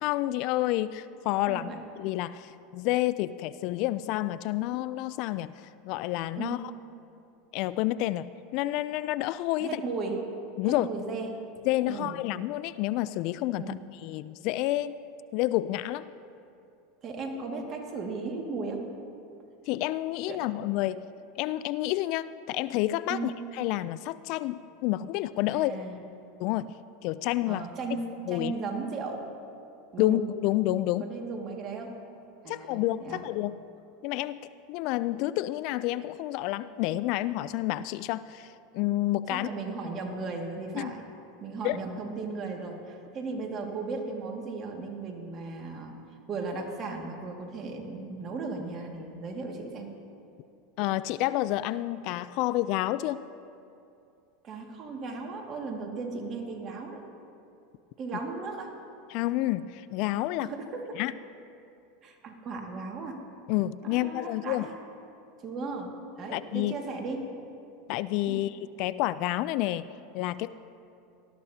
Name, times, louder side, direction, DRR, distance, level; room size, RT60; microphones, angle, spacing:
voice 1, 0.0-1.7 2.0-5.5 5.8-6.6 7.5-8.3 8.5-9.8 10.6-10.9 11.7-15.0 15.3-16.0 19.7-21.0 21.4-23.3 23.6-25.9 26.4-26.7 27.0-27.6 28.3-28.5 30.0-31.1 32.5-33.6 34.0-34.4 34.7-39.5 40.8-40.9 41.6-41.8 50.8-53.3 59.1-60.5 61.0-61.1 63.5-64.7 66.3-66.7 67.9-69.9 70.1-70.5, left 16 dB, 60° left, 16 dB, 0.3 m, -29 dB
voice 2, 1.5-1.8 6.4-6.6 9.6-10.2 10.6-11.4 11.9-12.1 13.6-13.8 17.0-18.8 20.3-20.4 23.1-23.3 25.5-26.0 27.5-29.3 29.9-30.2 31.0-31.9 32.4-33.2 39.3-41.1 41.4-45.9 46.3-49.9 54.4-57.0 58.0-58.7 60.4-60.9 62.0-63.2 63.9-64.7 65.4-67.3 68.3-68.4, right 3 dB, 40° right, 1 dB, 2.0 m, -36 dB
19.0 x 13.0 x 2.8 m, 2.6 s
hypercardioid pair, 105°, 0 cm